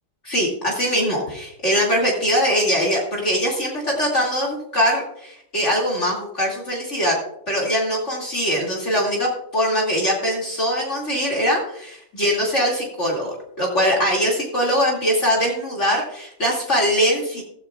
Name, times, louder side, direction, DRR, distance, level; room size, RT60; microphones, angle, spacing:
voice 1, 0.2-7.2 7.5-17.4, equal, 40° left, -3 dB, 2.9 m, -22 dB
15.0 x 14.0 x 2.4 m, 0.76 s
omnidirectional pair, 1.9 m